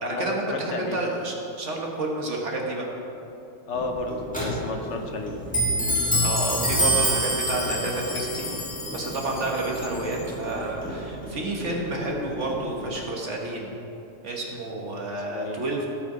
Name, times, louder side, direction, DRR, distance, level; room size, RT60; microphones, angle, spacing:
voice 1, 0.0-2.9 6.2-8.5 8.9-13.7 14.2-15.9, right 2 dB, 65° right, -1 dB, 1.6 m, -30 dB
voice 2, 3.7-4.1 4.4-5.3 9.9-10.0 15.3-15.6, left 3 dB, 65° left, 4 dB, 1.2 m, -32 dB
Clock, 3.7-13.0, equal, 5° left, 2.1 m, -28 dB
Chime, 6.3-10.5, left 3 dB, 35° left, 1.1 m, -34 dB
17.0 x 5.8 x 4.9 m, 2.8 s
omnidirectional pair, 1.3 m